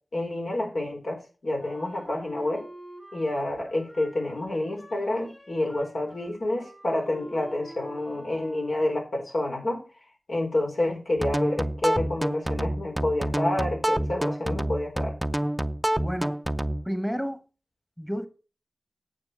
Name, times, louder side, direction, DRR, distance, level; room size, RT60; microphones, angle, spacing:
voice 1, 0.1-2.7 3.1-9.8 10.3-15.2, left 1 dB, 85° left, 4.0 m, -28 dB
Wind instrument woodwind instrument, 1.6-9.1, right 1 dB, 45° left, 5.5 m, -48 dB
sound 1, 11.2-16.9, right 1 dB, 10° right, 0.5 m, -28 dB
voice 2, 16.0-16.4 16.8-17.4 18.0-18.3, equal, 5° left, 1.1 m, -30 dB
8.9 x 6.8 x 5.7 m
wide cardioid pair, 70°, 0 cm